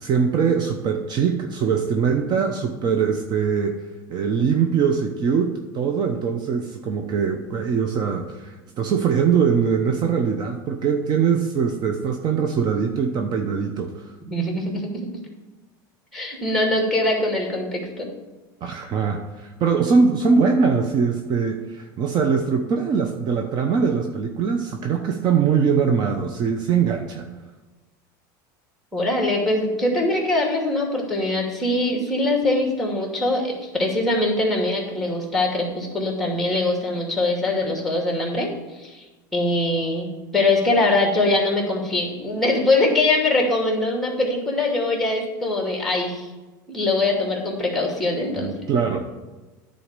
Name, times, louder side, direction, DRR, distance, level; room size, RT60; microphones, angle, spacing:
voice 1, 0.0-3.8 4.1-14.1 18.6-27.3 48.4-49.0, right 6 dB, 40° right, 4 dB, 0.9 m, -22 dB
voice 2, 14.3-14.9 16.1-18.1 28.9-39.0 39.3-46.3 46.7-48.5, left 2 dB, ahead, -1 dB, 2.6 m, -22 dB
10.0 x 4.2 x 6.7 m, 1.2 s
supercardioid pair, 120°, 11 cm